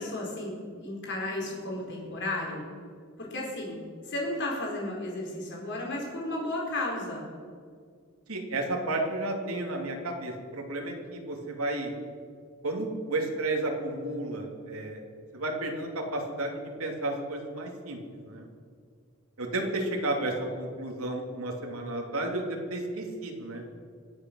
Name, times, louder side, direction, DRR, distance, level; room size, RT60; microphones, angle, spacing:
voice 1, 0.0-2.7 3.2-3.8 4.0-7.3, left 1 dB, 55° left, -2 dB, 4.5 m, -33 dB
voice 2, 8.3-11.9 12.6-15.0 15.3-18.0 18.2-18.5 19.4-23.6, right 2 dB, 80° right, 1 dB, 2.6 m, -32 dB
24.5 x 8.3 x 6.3 m, 2.1 s
head